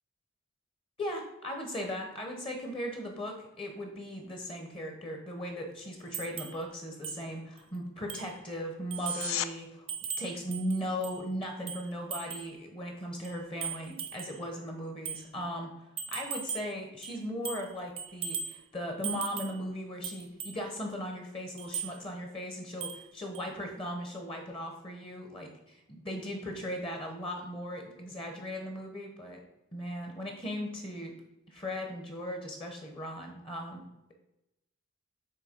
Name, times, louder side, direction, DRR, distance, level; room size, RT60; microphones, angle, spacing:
voice 1, 1.0-9.9 10.2-15.7 16.1-25.5 25.9-29.4 29.7-31.1 31.5-33.8, equal, 25° left, 3 dB, 0.9 m, -38 dB
sound 1, 6.1-6.6 7.0-7.2 7.6-7.7 8.1-8.4 8.9-9.4 9.9-11.2 11.7-12.5 13.2-14.4 15.1-15.2 16.0-16.7 17.0-17.7 18.0-18.6 19.0-19.6 20.0-20.6 21.6-21.9 22.8-23.1 23.3-23.5, right 7 dB, 30° right, 0.5 m, -38 dB
sound 2, 8.9-9.5 20.9-21.0, left 11 dB, 85° left, 0.4 m, -34 dB
7.8 x 3.2 x 5.1 m, 0.88 s
head